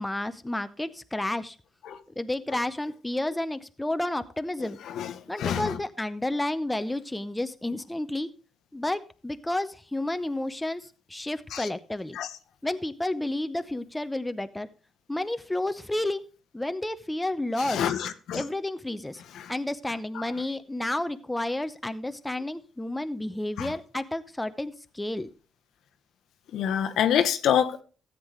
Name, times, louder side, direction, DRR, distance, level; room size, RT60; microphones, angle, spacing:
voice 1, 0.0-1.6 2.2-4.8 5.3-8.3 8.7-12.2 12.6-14.7 15.1-16.2 16.5-17.8 18.3-19.2 19.5-25.3, left 1 dB, 10° left, 0.7 m, -31 dB
voice 2, 5.4-5.8 11.5-11.7 12.1-12.3 17.6-18.4 19.3-19.5 23.6-23.7 26.5-27.8, left 9 dB, 75° left, 0.9 m, -26 dB
14.0 x 8.2 x 3.1 m
cardioid pair, 90°, 0 cm